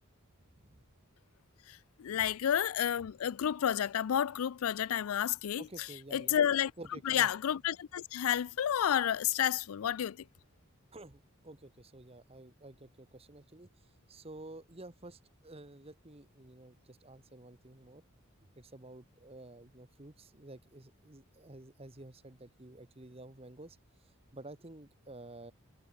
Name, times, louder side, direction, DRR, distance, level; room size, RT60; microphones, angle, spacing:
voice 1, 0.5-0.9 5.6-6.4 6.8-7.3 10.9-13.7 14.1-18.0 18.6-23.8 24.3-25.5, right 2 dB, 25° right, 1.2 m, -51 dB
voice 2, 1.7-6.7 7.1-10.2, left 9 dB, 80° left, 0.4 m, -31 dB
head